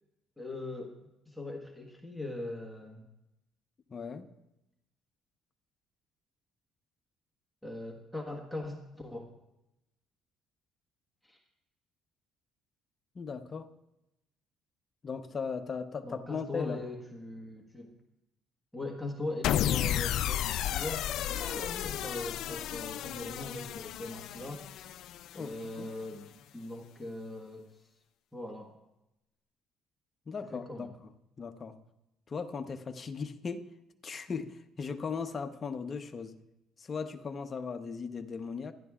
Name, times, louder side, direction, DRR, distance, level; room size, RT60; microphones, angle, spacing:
voice 1, 0.4-1.0 1.3-3.1 7.6-9.3 11.2-11.4 16.0-17.9 18.7-25.1 25.3-27.7 28.3-28.8 30.4-30.9, left 2 dB, ahead, 0 dB, 1.4 m, -41 dB
voice 2, 3.9-4.3 13.1-13.7 15.0-16.8 25.4-25.9 30.3-31.1 31.4-31.8 32.3-33.7 34.0-36.4 36.8-38.7, left 5 dB, 35° left, 7 dB, 0.9 m, -38 dB
sound 1, 19.4-25.8, left 12 dB, 70° left, 0.4 m, -33 dB
27.5 x 11.0 x 2.4 m, 0.91 s
cardioid pair, 110°, 0 cm